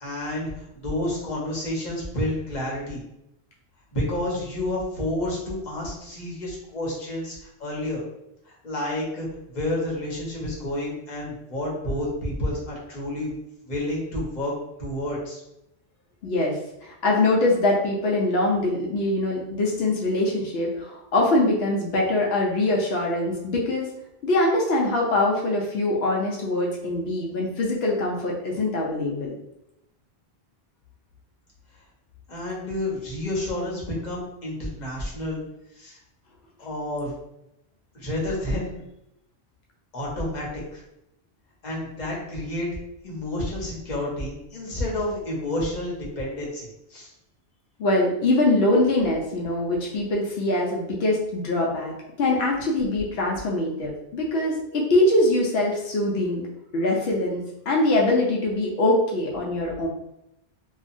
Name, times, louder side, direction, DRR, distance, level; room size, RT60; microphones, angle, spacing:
voice 1, 0.0-3.0 3.9-8.0 8.5-13.3 13.6-14.5 14.8-15.4 32.3-35.4 35.7-36.0 36.6-37.1 37.9-38.8 39.9-40.8 41.6-42.7 43.0-47.1, left 1 dB, 45° left, -4 dB, 0.9 m, -30 dB
voice 2, 16.2-23.9 24.2-29.3 47.8-56.4 56.7-59.9, left 2 dB, 80° left, -2 dB, 0.8 m, -23 dB
2.8 x 2.3 x 2.5 m, 0.84 s
omnidirectional pair, 1.0 m